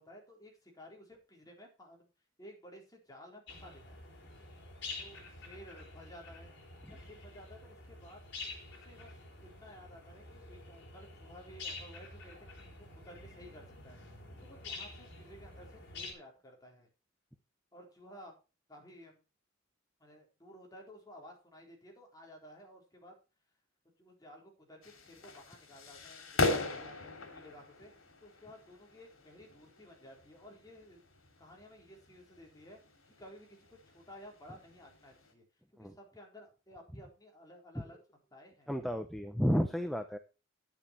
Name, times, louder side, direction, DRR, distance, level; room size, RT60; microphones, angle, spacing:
voice 1, 0.0-2.1 2.4-4.0 5.0-6.5 6.9-8.2 8.7-9.1 9.4-14.0 14.4-16.9 17.7-18.4 18.7-19.2 20.0-23.2 24.0-27.9 28.2-31.0 31.4-32.8 33.1-33.6 33.9-35.4 35.7-38.0 38.3-38.7, equal, 20° left, 0 dB, 4.2 m, -54 dB
sound 1, 3.5-16.1, left 3 dB, 60° left, 4.1 m, -48 dB
sound 2, 24.8-35.3, left 2 dB, 80° left, 2.9 m, -40 dB
voice 2, 38.7-40.2, equal, ahead, 7 dB, 0.8 m, -32 dB
10.5 x 8.9 x 4.6 m, 0.31 s
head